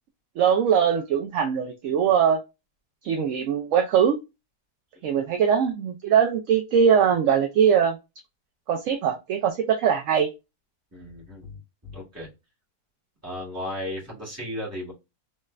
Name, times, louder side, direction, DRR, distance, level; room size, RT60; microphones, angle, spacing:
voice 1, 0.4-2.4 3.0-4.2 5.0-8.0 8.7-10.3, right 7 dB, 70° right, 0.7 m, -21 dB
voice 2, 10.9-12.3 13.2-14.9, left 1 dB, 10° right, 1.6 m, -35 dB
3.2 x 3.1 x 2.3 m
omnidirectional pair, 1.7 m